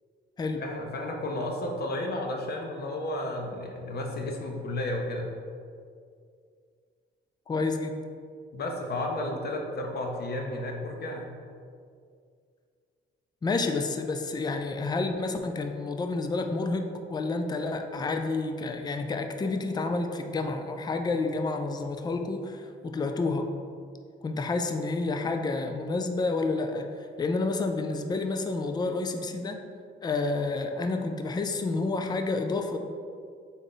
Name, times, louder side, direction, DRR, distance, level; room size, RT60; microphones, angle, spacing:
voice 1, 0.6-5.3 8.5-11.3, left 1 dB, 50° left, 1 dB, 0.8 m, -32 dB
voice 2, 7.5-8.0 13.4-23.5 24.2-29.6 30.0-32.8, left 3 dB, 20° left, 5 dB, 0.4 m, -29 dB
3.9 x 3.5 x 3.8 m, 2.2 s
cardioid pair, 90°, 20 cm